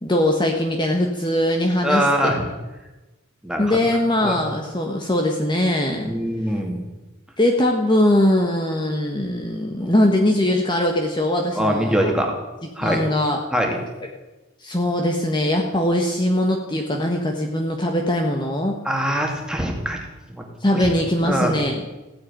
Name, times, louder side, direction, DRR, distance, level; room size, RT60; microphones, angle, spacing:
voice 1, 0.0-2.3 3.6-6.2 7.4-12.1 12.8-13.4 14.6-18.8 20.6-21.8, left 1 dB, 20° left, 2 dB, 1.4 m, -21 dB
voice 2, 1.8-2.5 3.4-3.8 4.2-4.4 6.0-6.8 9.8-9.9 11.6-12.3 12.8-13.0 13.5-13.8 18.8-20.0 20.3-20.4 20.8-20.9 21.2-21.6, equal, 5° right, 1 dB, 2.6 m, -23 dB
15.5 x 9.6 x 9.4 m, 1.1 s
head